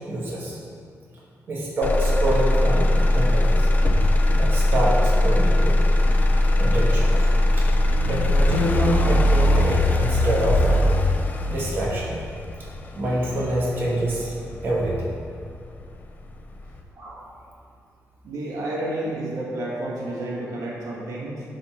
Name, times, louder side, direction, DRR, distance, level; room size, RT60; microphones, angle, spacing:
voice 1, 0.1-0.6 1.5-3.9 4.3-5.8 6.6-7.3 7.6-7.7 8.1-10.9 11.5-12.2 12.9-14.3 14.6-15.1 17.0-17.3, right 1 dB, 40° right, -5 dB, 1.3 m, -26 dB
Motor vehicle (road), 1.8-15.8 16.3-16.8, left 1 dB, 30° left, 0.5 m, -20 dB
voice 2, 18.2-21.4, right 1 dB, 85° right, -5 dB, 1.8 m, -30 dB
11.0 x 4.2 x 4.4 m, 2.4 s
wide cardioid pair, 175°, 6 cm